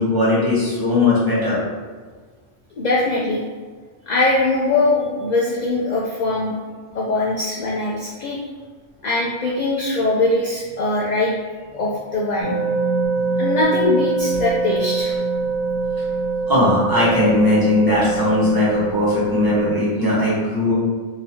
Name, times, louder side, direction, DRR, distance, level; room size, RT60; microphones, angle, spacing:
voice 1, 0.0-1.6 16.5-20.7, left 2 dB, 20° right, -9 dB, 1.0 m, -18 dB
voice 2, 2.8-3.4 4.1-6.6 6.9-8.4 9.0-11.3 11.7-12.6 13.4-15.1, left 2 dB, 65° left, -4 dB, 0.4 m, -21 dB
sound 1, 12.4-19.7, right 4 dB, ahead, 1.1 m, -23 dB
3.9 x 2.7 x 2.7 m, 1.5 s
omnidirectional pair, 1.3 m